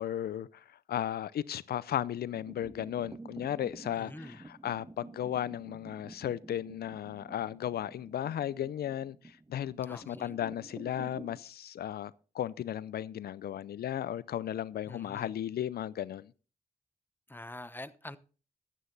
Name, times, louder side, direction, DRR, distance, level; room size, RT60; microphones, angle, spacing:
voice 1, 0.0-16.3, left 11 dB, 85° left, 0.5 m, -35 dB
sound 1, 2.1-11.4, right 2 dB, 20° right, 0.7 m, -50 dB
voice 2, 3.9-4.4 9.9-10.4 14.9-15.3 17.3-18.2, left 1 dB, 15° left, 0.9 m, -45 dB
13.0 x 9.2 x 4.0 m
cardioid pair, 55°, 16 cm